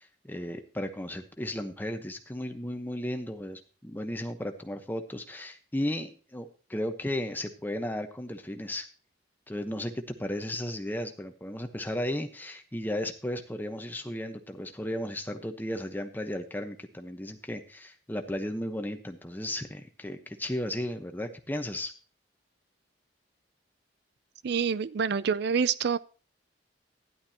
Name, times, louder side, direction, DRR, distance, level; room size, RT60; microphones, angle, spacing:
voice 1, 0.0-8.8 9.5-21.9, left 1 dB, 10° left, 6 dB, 1.0 m, -35 dB
voice 2, 24.4-26.0, right 6 dB, 65° right, 17 dB, 0.5 m, -27 dB
13.0 x 11.0 x 2.9 m, 0.37 s
head